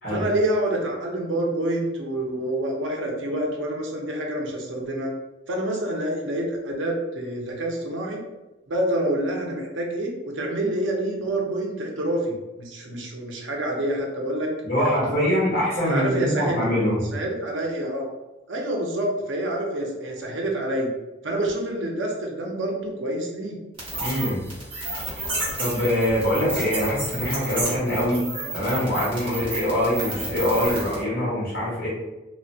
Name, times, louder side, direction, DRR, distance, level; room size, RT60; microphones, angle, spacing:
voice 1, 0.1-5.1 5.5-8.2 8.7-14.5 14.8-15.3 15.9-16.7 17.1-18.1 18.5-20.9 21.2-23.6, right 1 dB, 85° right, 0 dB, 0.6 m, -27 dB
voice 2, 14.6-17.0 24.0-24.4 25.6-28.3 28.5-31.9, equal, 55° left, -7 dB, 1.4 m, -24 dB
sound 1, 23.8-31.0, right 2 dB, 30° right, 0.9 m, -31 dB
3.0 x 2.1 x 2.6 m, 1.0 s
head